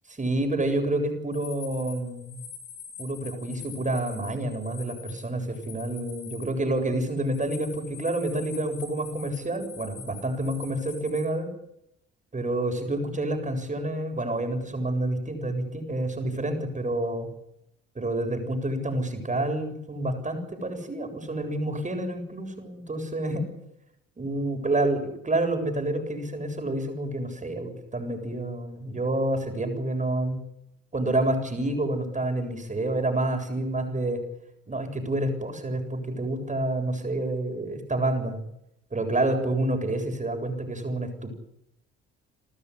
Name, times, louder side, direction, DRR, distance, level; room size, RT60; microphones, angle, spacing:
voice 1, 0.2-2.4 3.0-11.5 12.3-17.3 18.0-23.5 24.2-30.4 30.9-34.2 34.7-38.4 38.9-41.3, right 1 dB, 25° right, 5 dB, 7.4 m, -28 dB
sound 1, 1.3-11.2, left 7 dB, 90° left, 6.0 m, -45 dB
28.5 x 13.5 x 9.9 m, 0.82 s
supercardioid pair, 70°, 29 cm